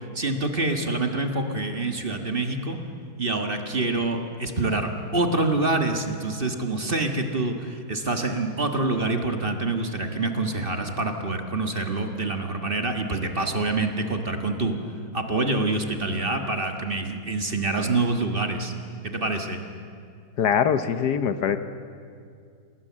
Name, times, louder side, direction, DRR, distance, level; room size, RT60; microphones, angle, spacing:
voice 1, 0.1-2.8 3.2-14.7 15.1-18.7 19.0-19.6, right 2 dB, 35° right, 5 dB, 1.7 m, -26 dB
voice 2, 20.4-21.6, left 7 dB, 70° left, 10 dB, 1.5 m, -22 dB
27.5 x 19.5 x 7.5 m, 2.3 s
omnidirectional pair, 1.9 m